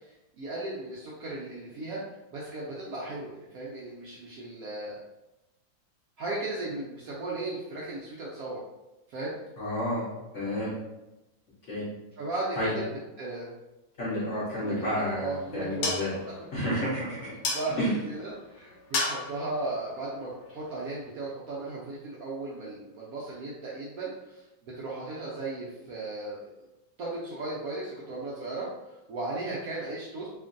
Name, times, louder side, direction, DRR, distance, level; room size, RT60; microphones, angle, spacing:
voice 1, 0.0-2.0 2.3-5.0 6.2-8.6 9.1-9.4 12.2-12.9 13.2-13.5 14.6-16.2 17.4-26.4 27.0-30.3, right 2 dB, 85° right, -6 dB, 0.7 m, -36 dB
voice 2, 9.6-10.0 10.3-10.7 11.7-11.8 12.6-12.7 14.0-16.1 16.5-17.3 17.8-17.9, left 1 dB, 55° left, -7 dB, 0.8 m, -30 dB
sound 1, 14.6-21.1, left 3 dB, 90° left, 1.4 m, -37 dB
2.9 x 2.5 x 2.5 m, 0.98 s
omnidirectional pair, 2.1 m